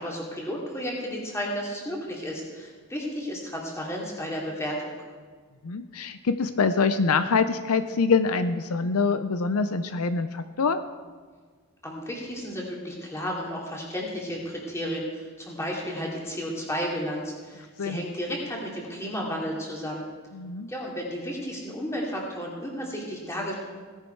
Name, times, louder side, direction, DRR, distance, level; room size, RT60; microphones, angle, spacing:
voice 1, 0.0-4.9 11.8-20.0 20.7-23.6, equal, 15° left, -2 dB, 2.7 m, -33 dB
voice 2, 5.6-10.8 17.8-18.1 20.3-20.7, left 4 dB, 75° left, 11 dB, 0.6 m, -25 dB
17.0 x 10.5 x 4.6 m, 1.5 s
head